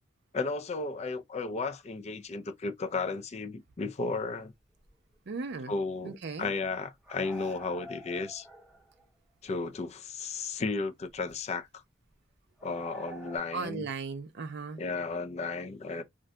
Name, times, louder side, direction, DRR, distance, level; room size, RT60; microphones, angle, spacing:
voice 1, 0.3-4.5 5.7-8.5 9.4-11.8 12.6-13.9 14.8-16.0, left 4 dB, 35° left, 0.4 m, -34 dB
sound 1, 4.3-4.4 4.9-5.0 5.2-5.3 7.0-9.0 9.6-9.7 11.1-11.4 12.6-13.4, right 1 dB, ahead, 0.7 m, -47 dB
voice 2, 5.3-5.7 6.0-6.5 13.5-14.8, right 4 dB, 55° right, 0.5 m, -36 dB
2.5 x 2.2 x 3.7 m
head